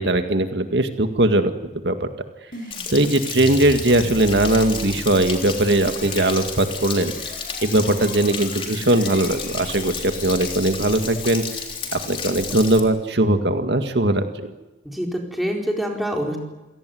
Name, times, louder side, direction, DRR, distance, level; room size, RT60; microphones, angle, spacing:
voice 1, 0.0-1.5 1.8-2.1 2.9-7.1 7.6-11.4 11.9-14.5, right 1 dB, 75° right, 7 dB, 2.0 m, -20 dB
sound 1, 2.5-11.6, left 1 dB, 50° left, 7.2 m, -37 dB
Stream / Splash splatter / Trickle dribble, 2.7-12.8, left 6 dB, 30° left, 3.5 m, -32 dB
voice 2, 14.8-16.4, equal, ahead, 0 dB, 4.4 m, -25 dB
28.0 x 17.5 x 9.5 m, 1.1 s
head